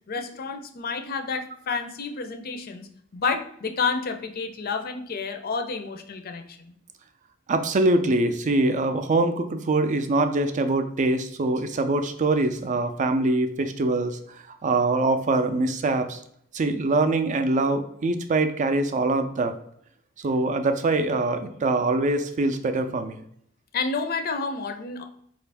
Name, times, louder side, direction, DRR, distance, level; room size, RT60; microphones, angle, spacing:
voice 1, 0.1-2.9 3.1-6.7 23.7-25.0, left 4 dB, 50° left, 6 dB, 0.5 m, -30 dB
voice 2, 7.5-14.2 14.5-16.2 16.5-19.5 20.2-23.2, right 2 dB, 35° right, 8 dB, 0.4 m, -23 dB
4.6 x 2.5 x 3.3 m, 0.67 s
head